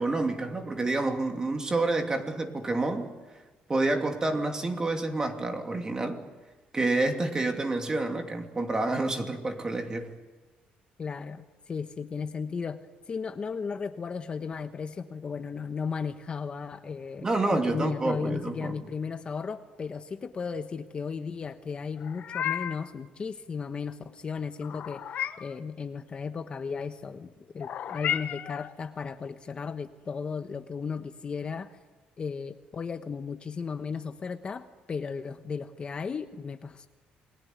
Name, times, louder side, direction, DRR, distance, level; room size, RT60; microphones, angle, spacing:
voice 1, 0.0-3.1 3.7-6.2 6.7-10.1 17.2-18.7, right 2 dB, 20° right, 4 dB, 2.8 m, -28 dB
voice 2, 11.0-12.8 13.1-25.0 25.4-31.8 32.2-36.9, left 5 dB, 30° left, 8 dB, 1.1 m, -35 dB
Meow, 22.0-22.9 24.6-25.6 27.6-28.7, left 10 dB, 55° left, 1.3 m, -33 dB
29.0 x 21.0 x 9.4 m, 1.3 s
cardioid pair, 125°, 3 cm